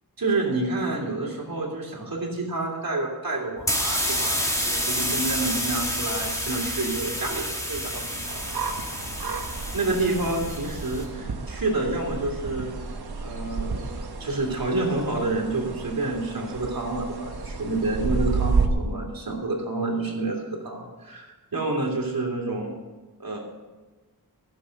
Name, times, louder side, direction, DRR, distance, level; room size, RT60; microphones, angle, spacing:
voice 1, 0.2-8.4 8.8-8.9 9.7-12.7 13.2-22.7 23.2-23.4, right 2 dB, 65° right, -1 dB, 3.1 m, -29 dB
sound 1, 3.6-11.0, equal, 10° left, 2.1 m, -29 dB
sound 2, 8.3-18.7, right 4 dB, 85° right, 1.2 m, -31 dB
14.0 x 7.6 x 6.5 m, 1.2 s
wide cardioid pair, 100°, 37 cm